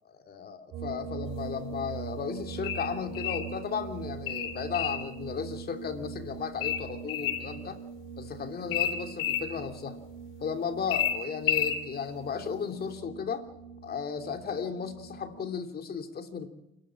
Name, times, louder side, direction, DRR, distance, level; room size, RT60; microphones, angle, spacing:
voice 1, 0.0-7.8 8.2-10.0 10.4-13.5 13.8-16.5, left 6 dB, 50° left, 7 dB, 3.0 m, -35 dB
sound 1, 0.7-15.5, right 6 dB, 85° right, 3.3 m, -42 dB
sound 2, 2.6-3.5 4.3-5.1 6.6-7.5 8.7-9.5 10.9-11.8, left 10 dB, 85° left, 4.1 m, -29 dB
28.5 x 12.5 x 7.7 m, 0.89 s
cardioid pair, 90°, 20 cm